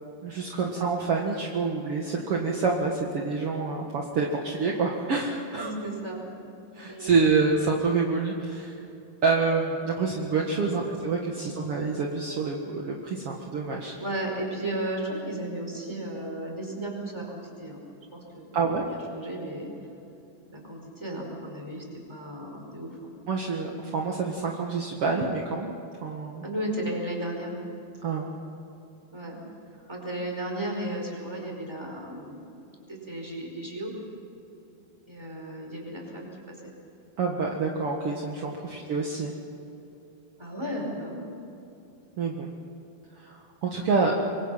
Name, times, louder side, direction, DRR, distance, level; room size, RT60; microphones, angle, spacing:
voice 1, 0.2-5.7 6.7-8.8 9.2-13.9 18.5-18.8 23.3-25.7 26.0-26.4 28.0-28.3 37.2-39.3 42.2-42.5 43.2-44.1, right 4 dB, 55° right, 0 dB, 1.7 m, -27 dB
voice 2, 5.5-6.2 6.9-7.2 10.4-11.0 11.3-11.7 13.9-17.8 18.1-18.6 18.9-19.7 20.5-23.1 26.4-27.6 29.1-29.4 29.9-33.9 35.1-36.7 38.7-38.8 40.4-41.2, right 1 dB, 5° right, 0 dB, 4.7 m, -35 dB
26.5 x 23.5 x 5.7 m, 2.9 s
omnidirectional pair, 5.0 m